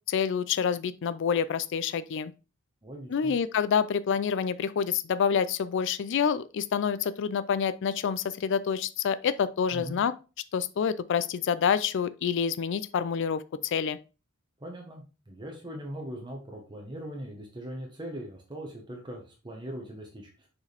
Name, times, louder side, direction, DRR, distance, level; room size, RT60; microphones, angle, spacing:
voice 1, 0.1-2.3 3.1-10.1 10.5-14.0, left 7 dB, 60° left, 0.4 m, -27 dB
voice 2, 2.8-3.3 9.7-10.0 14.6-20.5, right 1 dB, 20° right, 1.2 m, -40 dB
6.6 x 4.8 x 3.4 m
head